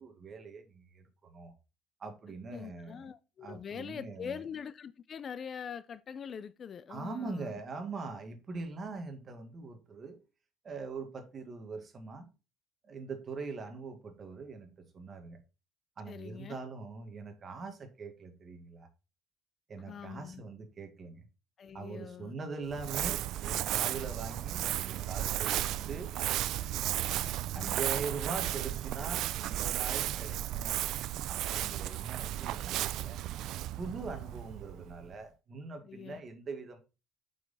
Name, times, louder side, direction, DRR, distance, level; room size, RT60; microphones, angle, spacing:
voice 1, 0.0-1.5 2.0-3.1 3.4-4.4 6.9-10.2 10.6-12.3 12.8-15.4 16.0-18.9 19.7-21.2 21.7-26.1 27.5-30.8 31.3-33.2 33.8-36.8, right 4 dB, 35° right, 1.6 m, -42 dB
voice 2, 2.5-7.6 16.1-16.6 19.8-20.4 21.6-22.3 26.8-27.9 35.8-36.2, left 7 dB, 40° left, 0.4 m, -44 dB
Crumpling crinkling, 22.7-35.1, right 13 dB, 70° right, 0.4 m, -34 dB
7.6 x 5.5 x 4.0 m
cardioid pair, 135°, 0 cm